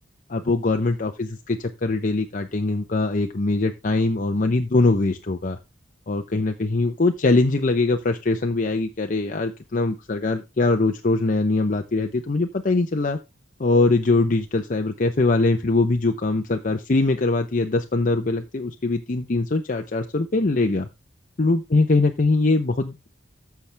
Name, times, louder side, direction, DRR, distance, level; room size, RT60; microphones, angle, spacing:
voice 1, 0.3-5.6 6.1-13.2 13.6-20.9 21.4-23.1, left 2 dB, 40° left, 5 dB, 0.7 m, -22 dB
14.5 x 5.9 x 3.3 m, 0.25 s
head